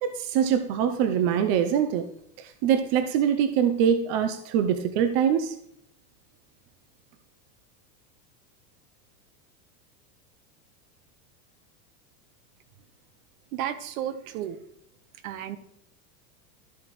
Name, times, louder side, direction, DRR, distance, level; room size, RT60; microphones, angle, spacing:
voice 1, 0.0-2.0 2.4-5.5, right 8 dB, 30° right, 8 dB, 0.5 m, -24 dB
voice 2, 13.5-14.6 15.2-15.6, right 10 dB, 55° right, 10 dB, 1.1 m, -32 dB
13.0 x 7.6 x 3.1 m, 0.73 s
supercardioid pair, 150°, 50 cm